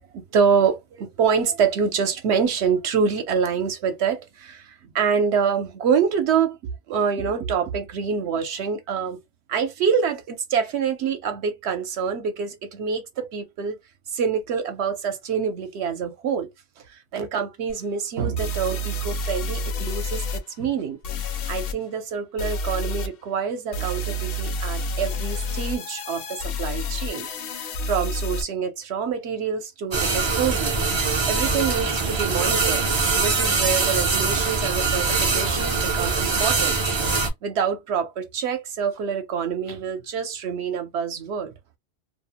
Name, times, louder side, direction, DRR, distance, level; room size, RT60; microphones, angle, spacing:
voice 1, 0.1-6.6 6.9-9.2 9.5-13.8 14.1-16.5 16.9-21.0 21.5-27.3 27.8-30.8 31.3-32.8 33.2-36.8 37.4-41.5, right 6 dB, 75° right, 0.8 m, -26 dB
sound 1, 17.7-17.8 18.4-20.4 21.0-21.7 22.4-23.1 23.7-28.4, left 1 dB, 60° left, 0.7 m, -29 dB
sound 2, 29.9-37.3, right 4 dB, 45° right, 0.3 m, -23 dB
2.5 x 2.0 x 2.8 m
omnidirectional pair, 1.2 m